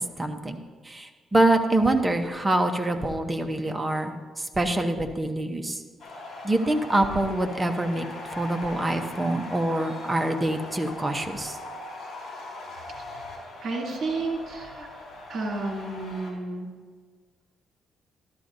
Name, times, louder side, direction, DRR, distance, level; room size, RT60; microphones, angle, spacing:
voice 1, 0.2-0.6 0.8-5.8 6.4-8.0 8.4-11.5, right 1 dB, 15° right, 5 dB, 0.8 m, -25 dB
sound 1, 6.0-16.3, left 2 dB, 55° left, 3.5 m, -40 dB
voice 2, 13.6-14.9 15.3-16.7, right 3 dB, 50° right, -1 dB, 2.6 m, -31 dB
13.0 x 12.5 x 2.6 m, 1.5 s
cardioid pair, 115°, 0 cm